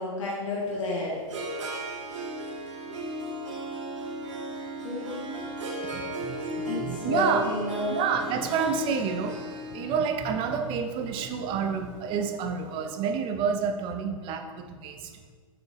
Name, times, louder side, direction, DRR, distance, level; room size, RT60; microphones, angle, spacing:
voice 1, 0.0-1.4 4.8-5.5 6.7-8.0, left 2 dB, 60° left, -4 dB, 1.7 m, -31 dB
Harp, 0.6-12.8, right 1 dB, 60° right, 1.2 m, -36 dB
voice 2, 5.8-7.5 7.9-15.2, right 6 dB, 30° right, 6 dB, 0.7 m, -29 dB
6.2 x 4.9 x 4.1 m, 1.5 s
figure-of-eight pair, 110°, 18 cm